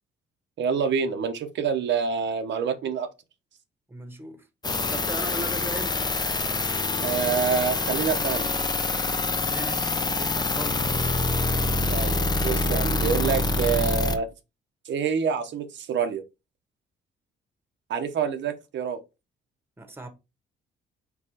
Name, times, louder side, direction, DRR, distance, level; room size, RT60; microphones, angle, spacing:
voice 1, 0.6-3.1 7.0-8.5 11.9-14.3 14.8-16.2 17.9-19.0, right 6 dB, 65° right, 0.8 m, -27 dB
voice 2, 3.9-4.5 4.8-6.1 9.4-11.2 19.8-20.1, right 1 dB, 10° right, 1.1 m, -38 dB
sound 1, 4.6-14.2, left 2 dB, 20° left, 0.6 m, -26 dB
4.5 x 4.1 x 2.8 m
cardioid pair, 90°, 20 cm